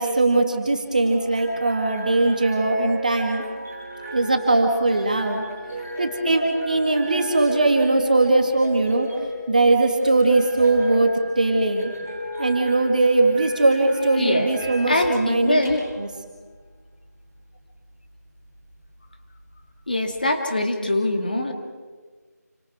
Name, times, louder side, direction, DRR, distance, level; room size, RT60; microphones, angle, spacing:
voice 1, 0.0-3.5 4.1-5.4 6.0-9.1 9.5-11.9 12.4-15.6 16.0-16.1, right 2 dB, 25° right, 4 dB, 2.2 m, -20 dB
sound 1, 1.0-20.1, equal, ahead, 0.6 m, -36 dB
voice 2, 14.2-14.5 14.9-15.8 19.9-21.5, left 2 dB, 30° left, 4 dB, 2.2 m, -23 dB
29.5 x 26.0 x 4.9 m, 1.5 s
figure-of-eight pair, 175°, 9 cm